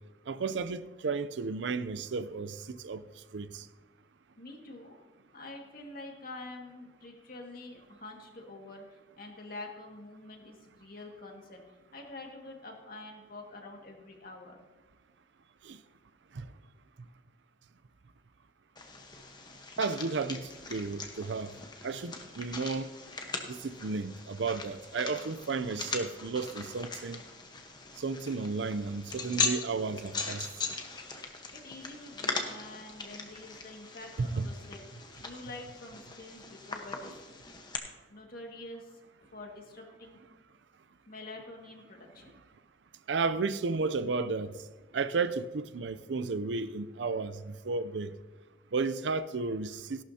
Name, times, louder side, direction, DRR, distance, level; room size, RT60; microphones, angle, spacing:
voice 1, 0.3-3.0 3.3-3.7 15.6-15.8 16.3-16.5 19.8-21.5 21.8-22.9 23.5-27.2 28.0-30.5 34.2-34.5 43.1-44.5 44.9-48.1 48.7-50.0, right 4 dB, 75° right, 0.5 m, -33 dB
voice 2, 4.4-5.0 5.3-8.8 9.2-11.6 11.9-14.6 31.5-34.8 35.2-37.4 38.1-40.2 41.1-42.3, left 2 dB, 55° left, 2.0 m, -46 dB
sound 1, 18.8-37.8, left 4 dB, 25° left, 1.1 m, -40 dB
16.5 x 11.5 x 2.8 m
head